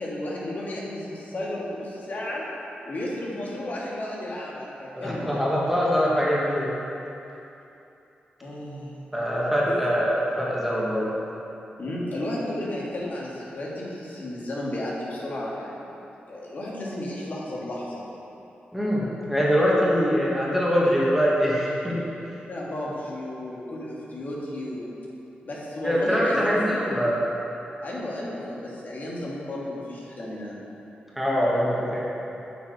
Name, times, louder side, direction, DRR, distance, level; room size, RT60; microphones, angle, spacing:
voice 1, 0.0-2.5 2.9-5.4 8.4-9.0 9.7-9.8 11.8-16.0 16.3-18.1 22.5-24.9 25.5-26.9 27.8-30.6, left 1 dB, 55° left, -5 dB, 1.8 m, -33 dB
voice 2, 4.9-6.7 9.1-11.2 18.7-22.0 25.8-27.1 31.2-32.0, equal, 5° right, -6 dB, 1.9 m, -23 dB
8.7 x 5.5 x 4.7 m, 2.9 s
cardioid pair, 70°, 4 cm